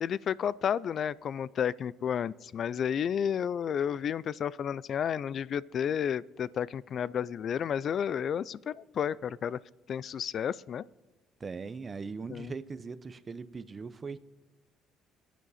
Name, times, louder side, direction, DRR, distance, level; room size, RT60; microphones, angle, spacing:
voice 1, 0.0-9.6 9.9-10.8 12.3-12.5, left 8 dB, 50° left, 21 dB, 0.4 m, -31 dB
voice 2, 11.4-14.2, right 4 dB, 30° right, 14 dB, 0.7 m, -40 dB
25.5 x 9.1 x 4.2 m, 1.2 s
cardioid pair, 100°, 0 cm